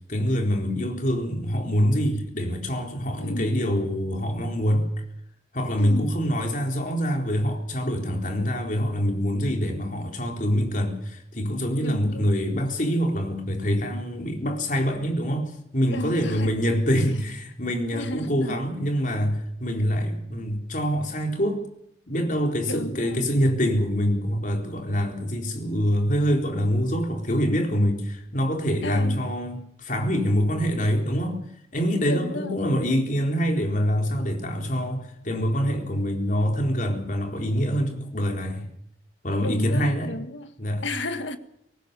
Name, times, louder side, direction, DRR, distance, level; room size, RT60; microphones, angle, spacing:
voice 1, 0.1-4.9 5.5-21.6 22.1-31.4 31.7-38.7 39.2-40.1 40.6-40.8, equal, 45° left, 4.1 m, -25 dB
voice 2, 3.2-3.5 5.8-6.1 11.8-12.3 15.9-16.5 17.9-18.6 22.6-23.2 28.8-29.2 32.1-32.6 39.4-40.5 40.8-41.4, left 1 dB, 90° left, 1.9 m, -33 dB
24.0 x 19.0 x 7.0 m
head